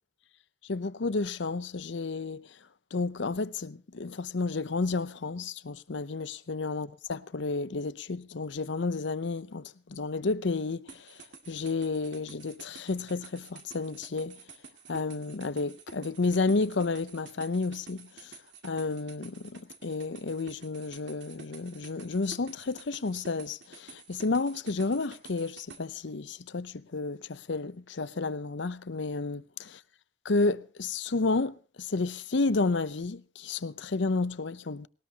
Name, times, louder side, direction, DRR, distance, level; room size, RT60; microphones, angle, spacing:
voice 1, 0.6-2.6 2.9-14.4 14.9-18.4 18.6-29.8 30.2-34.9, left 3 dB, 65° left, 0.7 m, -31 dB
sound 1, 10.9-25.8, right 5 dB, 65° right, 2.2 m, -50 dB
20.0 x 18.5 x 2.9 m
head